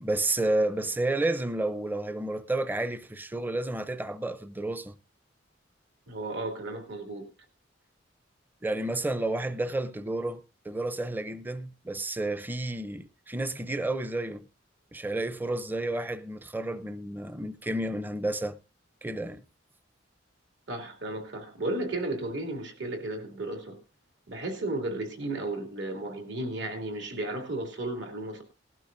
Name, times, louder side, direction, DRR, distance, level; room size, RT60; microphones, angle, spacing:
voice 1, 0.0-4.9 8.6-14.4 14.9-18.6 19.0-19.4, right 2 dB, 10° right, 0.5 m, -31 dB
voice 2, 6.1-7.3 20.7-23.8 24.3-28.4, right 2 dB, 75° right, 2.7 m, -34 dB
18.5 x 12.0 x 2.6 m
head